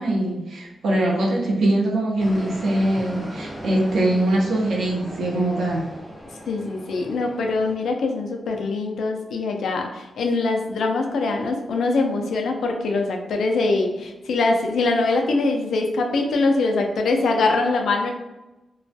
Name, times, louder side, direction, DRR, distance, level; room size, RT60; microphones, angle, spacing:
voice 1, 0.0-5.9, right 1 dB, 75° right, -2 dB, 0.6 m, -22 dB
sound 1, 2.2-7.8, equal, ahead, 0.3 m, -37 dB
voice 2, 6.5-18.1, left 3 dB, 90° left, 3 dB, 0.3 m, -23 dB
2.2 x 2.1 x 2.6 m, 1.0 s
wide cardioid pair, 170°, 0 cm